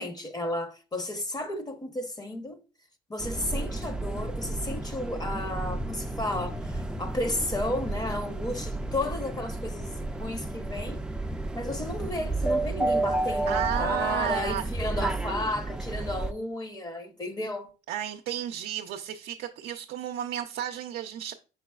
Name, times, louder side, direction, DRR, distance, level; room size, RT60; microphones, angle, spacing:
voice 1, 0.0-2.6 3.1-11.0 11.5-17.7, left 1 dB, 25° left, 0.7 m, -33 dB
sound 1, 3.2-16.3, right 2 dB, 5° right, 0.4 m, -31 dB
voice 2, 13.5-14.7 17.9-21.3, right 11 dB, 80° right, 0.5 m, -32 dB
5.4 x 3.9 x 2.2 m
cardioid pair, 110°, 17 cm